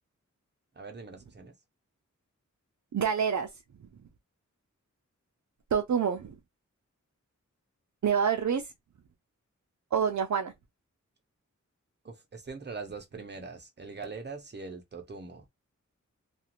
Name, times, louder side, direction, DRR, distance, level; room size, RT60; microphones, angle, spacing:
voice 1, 0.8-1.5 12.0-15.5, right 4 dB, 35° right, 0.8 m, -42 dB
voice 2, 2.9-3.5 5.7-6.3 8.0-8.6 9.9-10.5, right 7 dB, 70° right, 0.5 m, -27 dB
2.4 x 2.4 x 2.9 m
wide cardioid pair, 75°, 30 cm